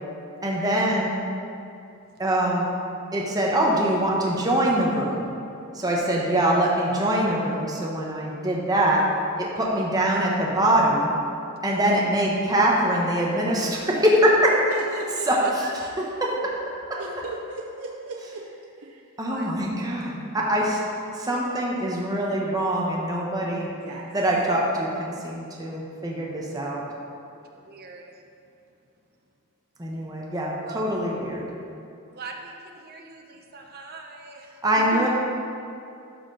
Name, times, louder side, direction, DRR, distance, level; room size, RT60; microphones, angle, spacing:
voice 1, 0.4-1.2 2.2-2.7 3.1-5.3 5.7-11.1 11.6-14.7 15.3-15.7 16.0-17.0 19.2-20.9 21.1-23.7 24.1-26.9 29.8-31.5 34.6-35.1, right 1 dB, 20° right, -3 dB, 0.9 m, -23 dB
voice 2, 14.7-15.5 17.0-18.4 18.8-19.1 23.8-24.1 34.8-35.1, right 3 dB, 90° right, -1 dB, 0.7 m, -36 dB
voice 3, 15.3-15.8 16.9-17.0 19.3-19.5 27.5-28.2 30.6-30.8 32.1-34.6, right 4 dB, 45° right, 2 dB, 0.8 m, -41 dB
12.5 x 4.3 x 3.8 m, 2.6 s
head